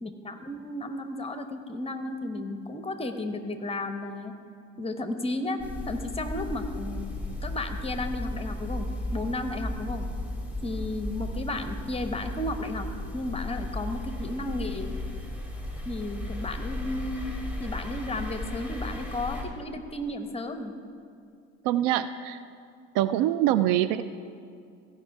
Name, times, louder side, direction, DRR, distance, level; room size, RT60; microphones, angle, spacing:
voice 1, 0.0-4.3 4.8-5.6 5.9-7.1 7.4-10.1 10.6-12.9 13.1-14.9 15.8-20.7, left 1 dB, 15° left, 7 dB, 0.9 m, -33 dB
sound 1, 5.6-19.4, left 1 dB, 5° right, 2.1 m, -35 dB
voice 2, 21.6-22.4 22.9-24.0, right 12 dB, 60° right, 13 dB, 0.5 m, -24 dB
15.5 x 5.5 x 4.7 m, 2.4 s
hypercardioid pair, 70°, 39 cm